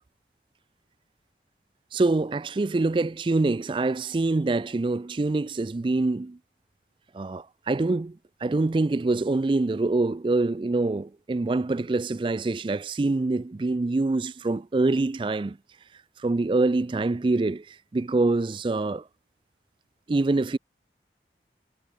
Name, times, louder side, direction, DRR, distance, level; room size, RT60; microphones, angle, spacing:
voice 1, 1.9-6.4 7.1-15.6 16.2-19.0 20.1-20.6, right 2 dB, 30° right, 0.3 m, -25 dB
head